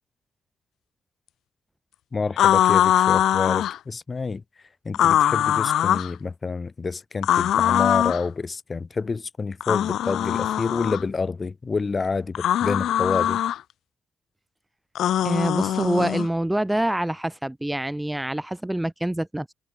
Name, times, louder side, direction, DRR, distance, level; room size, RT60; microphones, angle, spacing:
voice 1, 2.1-4.4 4.8-13.4, left 4 dB, 30° left, 7.5 m, -28 dB
sound 1, 2.4-3.8 4.9-6.1 7.2-8.2 9.6-11.0 12.3-13.6 14.9-16.3, left 11 dB, 75° left, 0.7 m, -21 dB
voice 2, 15.2-19.5, right 1 dB, 5° right, 1.2 m, -26 dB
cardioid pair, 90°, 0 cm